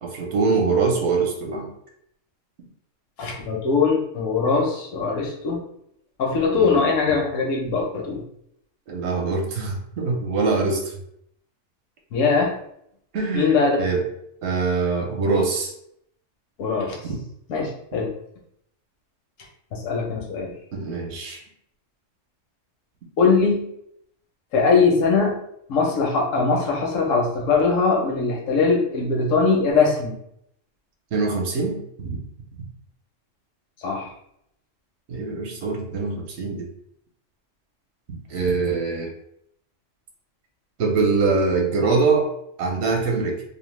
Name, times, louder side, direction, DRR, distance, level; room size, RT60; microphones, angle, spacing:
voice 1, 0.0-1.7 6.5-6.8 8.9-10.8 13.1-14.0 14.4-15.7 17.0-17.2 20.7-21.4 31.1-32.2 35.1-36.7 38.3-39.1 40.8-42.3 42.6-43.4, right 4 dB, 65° right, 2 dB, 0.9 m, -23 dB
voice 2, 3.2-5.6 6.2-8.2 12.1-12.6 13.3-13.8 16.6-17.0 17.5-18.1 19.7-20.5 23.2-23.7 24.5-25.3 25.7-30.1 33.8-34.1, left 4 dB, 85° left, 0 dB, 1.0 m, -21 dB
2.6 x 2.0 x 3.0 m, 0.73 s
omnidirectional pair, 1.3 m